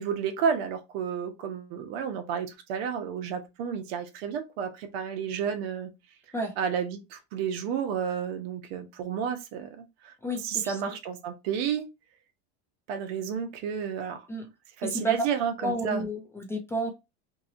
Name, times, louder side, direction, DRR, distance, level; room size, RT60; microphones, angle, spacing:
voice 1, 0.0-5.9 6.6-10.1 10.4-11.9 12.9-14.3 14.8-16.0, right 7 dB, 75° right, 0.8 m, -31 dB
voice 2, 10.2-10.8 14.3-14.5 14.8-15.2 15.6-16.9, right 1 dB, 10° left, 0.3 m, -31 dB
2.9 x 2.7 x 2.5 m
supercardioid pair, 150°, 31 cm